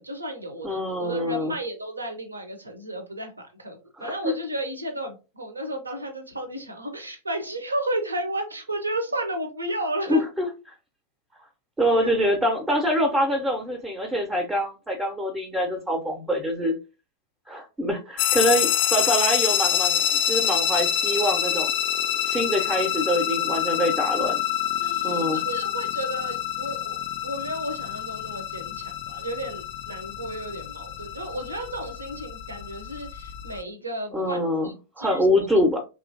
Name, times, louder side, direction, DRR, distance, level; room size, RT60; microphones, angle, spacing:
voice 1, 0.0-10.2 11.9-12.1 24.8-35.3, right 1 dB, 80° right, 6 dB, 0.6 m, -33 dB
voice 2, 0.6-1.5 4.0-4.3 10.1-10.5 11.8-16.8 17.5-21.7 22.2-24.4 25.0-25.4 34.1-35.8, equal, 10° right, 3 dB, 0.5 m, -25 dB
sound 1, 18.2-33.6, left 10 dB, 45° left, 0.3 m, -27 dB
2.9 x 2.4 x 2.5 m, 0.30 s
figure-of-eight pair, 90°, 0 cm